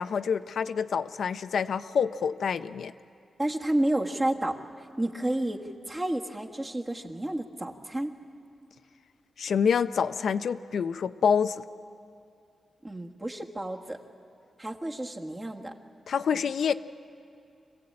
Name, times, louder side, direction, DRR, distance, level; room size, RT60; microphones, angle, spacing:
voice 1, 0.0-2.9 9.4-11.6 16.1-16.7, left 6 dB, 75° left, 11 dB, 0.5 m, -27 dB
voice 2, 3.4-5.6 5.9-8.1 12.8-14.0 14.6-15.7, right 1 dB, 20° right, 2 dB, 1.5 m, -30 dB
25.5 x 16.0 x 8.6 m, 2.5 s
wide cardioid pair, 115°, 0 cm